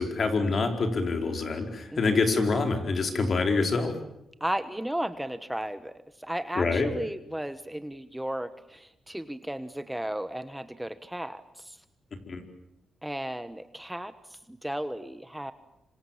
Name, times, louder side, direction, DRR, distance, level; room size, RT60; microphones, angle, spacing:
voice 1, 0.0-4.0 6.6-6.9 12.3-12.4, left 3 dB, 50° left, 5 dB, 4.5 m, -26 dB
voice 2, 1.9-2.3 4.4-11.8 13.0-15.5, right 1 dB, 5° right, 11 dB, 1.2 m, -35 dB
26.5 x 26.0 x 7.3 m, 0.89 s
cardioid pair, 95°, 0 cm